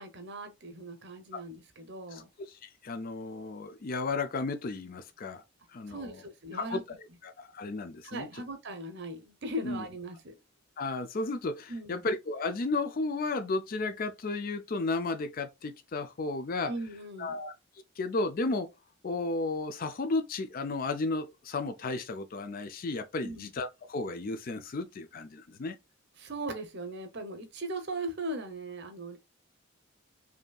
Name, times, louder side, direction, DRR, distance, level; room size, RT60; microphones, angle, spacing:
voice 1, 0.0-2.3 5.9-6.8 8.0-10.3 11.7-12.0 16.7-17.4 23.2-23.5 26.2-29.2, right 1 dB, 55° right, 0.9 m, -39 dB
voice 2, 2.1-5.4 5.7-6.2 6.5-6.8 7.2-8.4 9.6-9.8 10.8-16.7 17.2-17.5 18.0-18.7 19.0-25.8, left 3 dB, 45° left, 0.4 m, -33 dB
5.2 x 2.7 x 2.3 m
head